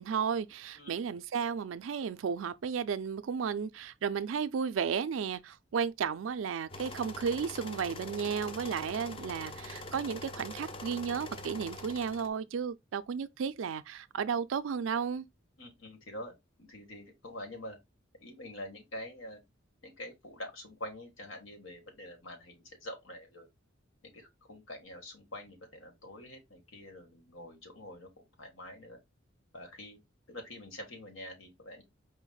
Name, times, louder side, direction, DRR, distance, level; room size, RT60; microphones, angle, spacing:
voice 1, 0.0-15.2, right 6 dB, 75° right, 0.4 m, -33 dB
sound 1, 6.7-12.3, left 1 dB, 30° left, 0.5 m, -44 dB
voice 2, 15.6-17.8 18.2-19.4 19.8-23.5 24.0-29.0 29.5-30.0 30.3-31.8, left 1 dB, 90° left, 1.5 m, -46 dB
5.0 x 2.1 x 3.9 m
head